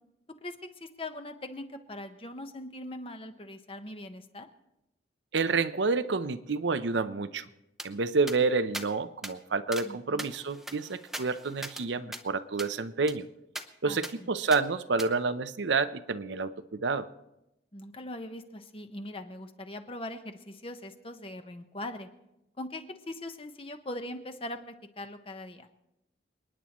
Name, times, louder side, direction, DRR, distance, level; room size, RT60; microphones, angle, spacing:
voice 1, 0.4-4.5 9.8-10.3 13.8-14.3 17.7-22.1 22.6-25.7, left 1 dB, 30° left, 7 dB, 1.0 m, -41 dB
voice 2, 5.3-7.5 7.8-13.3 13.8-17.1, right 4 dB, 80° right, 12 dB, 0.7 m, -29 dB
sound 1, 7.8-7.9 8.3-8.4 8.7-8.9 9.2-9.3 9.7-9.9 10.2-11.8 12.1-12.2 12.6-12.7 13.1-13.2 13.6-13.7 14.0-14.1 14.5-14.6 15.0-15.1, right 1 dB, ahead, 0.6 m, -40 dB
29.0 x 10.0 x 3.0 m, 0.86 s
head